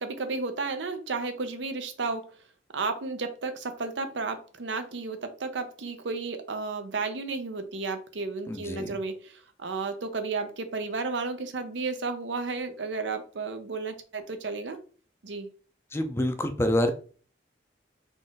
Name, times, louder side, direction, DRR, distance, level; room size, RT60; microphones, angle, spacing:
voice 1, 0.0-2.3 2.7-14.8 15.2-15.5, right 4 dB, 85° right, 8 dB, 0.7 m, -33 dB
voice 2, 8.5-9.0 15.9-16.9, left 1 dB, 15° left, 7 dB, 0.4 m, -27 dB
3.8 x 2.4 x 3.9 m, 0.40 s
head